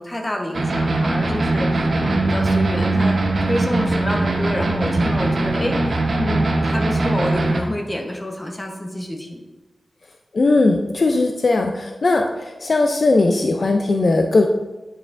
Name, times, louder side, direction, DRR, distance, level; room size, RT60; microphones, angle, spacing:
voice 1, 0.0-9.4, left 1 dB, 20° left, 2 dB, 1.0 m, -28 dB
sound 1, 0.5-7.6, right 2 dB, 65° right, 0.9 m, -20 dB
voice 2, 10.3-12.3 12.6-14.5, left 3 dB, 50° left, 3 dB, 0.4 m, -18 dB
9.6 x 5.6 x 2.6 m, 1.1 s
wide cardioid pair, 105°, 0 cm